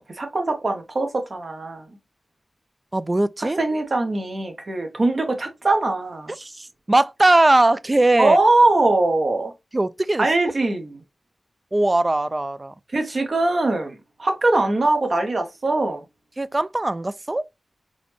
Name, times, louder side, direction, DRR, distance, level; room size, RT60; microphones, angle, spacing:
voice 1, 0.0-2.0 3.4-6.3 8.1-9.5 10.2-11.0 12.9-16.0, right 2 dB, 55° right, 1.0 m, -22 dB
voice 2, 2.9-3.6 6.4-8.4 9.7-10.3 11.7-12.7 16.4-17.4, right 2 dB, 30° right, 0.3 m, -20 dB
4.0 x 3.0 x 3.2 m
wide cardioid pair, 65°, 0 cm